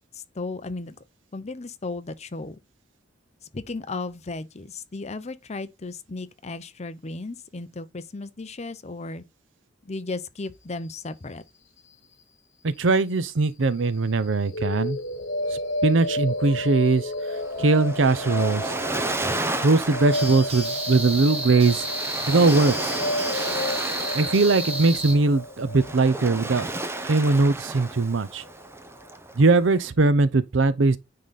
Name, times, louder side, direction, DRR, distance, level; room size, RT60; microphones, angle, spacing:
voice 1, 0.1-1.0 1.3-2.6 3.5-9.2 9.8-11.4, left 3 dB, 35° left, 0.7 m, -35 dB
voice 2, 12.6-15.0 15.5-18.7 19.6-21.9 22.3-23.0 24.1-26.7 27.0-28.4 29.4-31.0, right 3 dB, 75° right, 0.7 m, -21 dB
sound 1, 14.5-28.5, left 1 dB, 70° left, 1.5 m, -32 dB
Waves surf, 17.4-29.8, right 2 dB, 15° right, 0.8 m, -33 dB
sound 2, 20.1-25.1, right 1 dB, 30° right, 1.5 m, -32 dB
9.4 x 3.9 x 4.1 m
head